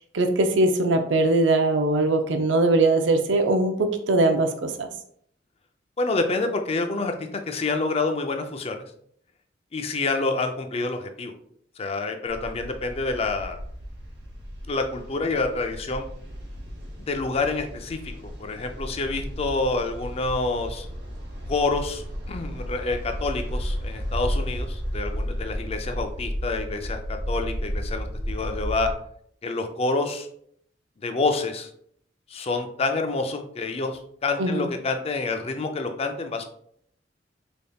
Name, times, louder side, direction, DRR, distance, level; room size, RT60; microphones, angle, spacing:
voice 1, 0.1-4.9 34.4-34.7, right 2 dB, 80° right, 6 dB, 0.5 m, -21 dB
voice 2, 6.0-8.8 9.7-11.3 11.8-13.6 14.7-16.1 17.1-18.0 18.4-20.9 21.5-28.9 29.4-30.3 31.0-31.7 32.3-36.4, left 3 dB, 35° left, 6 dB, 0.4 m, -27 dB
sound 1, 12.3-28.9, equal, 65° right, 0.9 m, -33 dB
3.9 x 3.4 x 2.3 m, 0.67 s
head